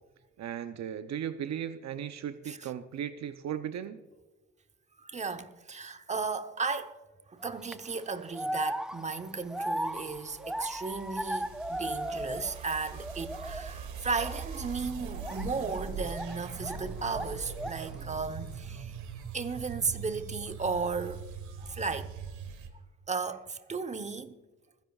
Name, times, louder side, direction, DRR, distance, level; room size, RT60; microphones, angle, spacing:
voice 1, 0.4-4.0, right 9 dB, 60° right, 0.7 m, -36 dB
voice 2, 5.0-7.0 7.3-19.0 19.3-21.3 21.6-22.4 23.1-24.4, right 4 dB, 25° right, 0.9 m, -35 dB
sound 1, 7.4-7.7 8.3-12.7 13.0-13.8 14.2-14.4 15.2-16.9 17.1-17.9, equal, ahead, 0.4 m, -36 dB
sound 2, 9.8-22.7, right 5 dB, 80° right, 1.4 m, -42 dB
26.5 x 10.5 x 2.4 m
cardioid pair, 90°, 30 cm